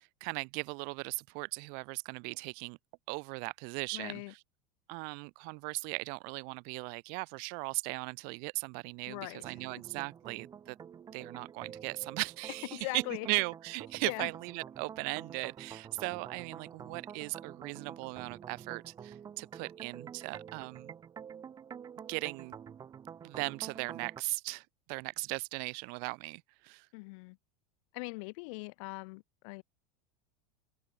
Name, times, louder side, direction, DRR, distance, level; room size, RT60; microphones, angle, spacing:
voice 1, 0.0-2.8 3.1-4.2 4.9-10.8 11.1-20.9 22.1-22.5 23.2-26.9, right 37 dB, 45° right, 1.4 m, -38 dB
voice 2, 3.9-4.3 9.1-9.6 12.7-13.3 14.0-14.3 26.9-27.4 27.9-29.6, left 30 dB, 55° left, 4.8 m, -41 dB
sound 1, 9.3-24.2, right 8 dB, 20° right, 3.2 m, -48 dB
open air
supercardioid pair, 175°, 20 cm